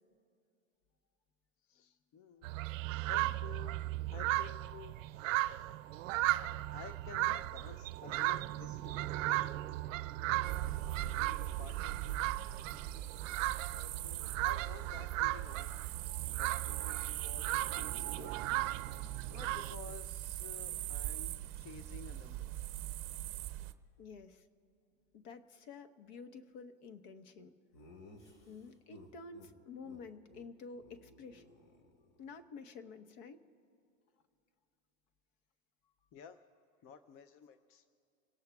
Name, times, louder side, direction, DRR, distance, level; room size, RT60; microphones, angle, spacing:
voice 1, 1.6-2.5 3.0-3.8 4.1-5.8 6.7-9.0 10.2-10.7 10.9-12.2 13.7-15.8 16.4-18.5 19.3-22.5 36.1-36.4 36.8-37.8, left 7 dB, 35° left, 11 dB, 0.6 m, -53 dB
sound 1, 2.4-19.7, right 16 dB, 75° right, 0.5 m, -36 dB
sound 2, 10.4-23.7, right 14 dB, 35° right, 0.7 m, -41 dB
voice 2, 24.0-24.4 25.1-27.5 28.5-31.4 32.2-33.4, left 4 dB, 60° left, 9 dB, 1.2 m, -50 dB
Laughter, 27.7-29.5 29.8-30.0 30.3-30.5 30.7-32.3, left 2 dB, 75° left, 3.5 m, -58 dB
27.0 x 17.5 x 2.4 m, 2.5 s
hypercardioid pair, 115°, 39 cm